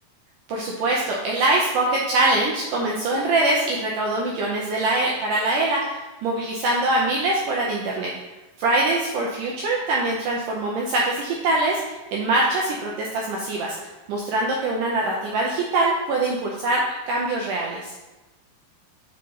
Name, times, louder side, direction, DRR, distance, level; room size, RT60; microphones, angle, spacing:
voice 1, 0.5-8.1 8.6-13.8 14.1-16.8 17.1-17.9, right 2 dB, 85° right, -3 dB, 1.8 m, -23 dB
5.6 x 4.9 x 3.9 m, 1.1 s
omnidirectional pair, 4.5 m